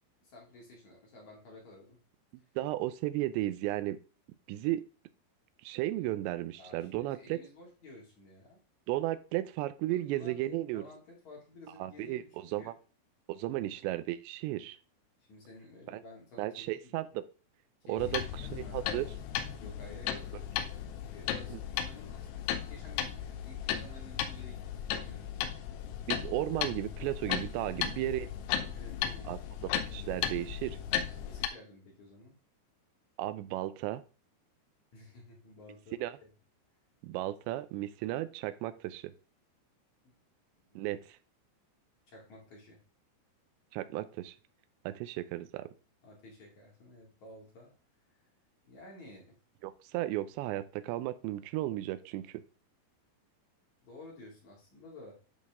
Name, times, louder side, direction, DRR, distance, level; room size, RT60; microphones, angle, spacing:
voice 1, 0.2-2.0 6.6-8.6 9.9-12.7 13.5-13.8 15.3-16.9 17.8-19.2 19.6-25.6 27.7-28.1 28.7-29.5 31.2-32.4 34.9-36.3 40.0-40.1 40.5-41.0 42.1-42.8 46.0-47.7 48.6-49.4 53.8-55.2, left 2 dB, 50° left, -3 dB, 3.2 m, -53 dB
voice 2, 2.6-4.0 4.5-4.8 5.6-7.4 8.9-10.8 11.8-12.7 13.3-14.8 15.9-16.0 16.4-17.1 17.9-18.2 18.5-19.1 21.5-21.6 26.1-28.3 29.3-29.4 29.9-30.8 33.2-34.0 36.0-36.2 37.0-39.1 40.8-41.2 43.7-44.3 44.9-45.6 49.6-52.4, right 15 dB, 85° right, 12 dB, 2.8 m, -34 dB
sound 1, 18.0-31.5, left 10 dB, 80° left, 2.8 m, -36 dB
10.5 x 4.1 x 3.6 m, 0.37 s
omnidirectional pair, 5.0 m